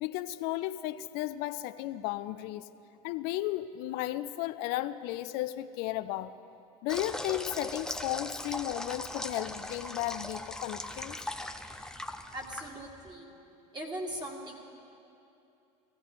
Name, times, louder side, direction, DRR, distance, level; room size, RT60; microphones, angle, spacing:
voice 1, 0.0-2.7 3.0-6.3 6.8-11.2, left 15 dB, 55° left, 13 dB, 0.5 m, -34 dB
sound 1, 6.9-13.1, left 1 dB, 5° left, 0.6 m, -39 dB
voice 2, 12.3-13.3 13.7-14.5, right 1 dB, 20° right, 0 dB, 2.3 m, -39 dB
16.0 x 15.5 x 4.0 m, 2.7 s
hypercardioid pair, 100°, 20 cm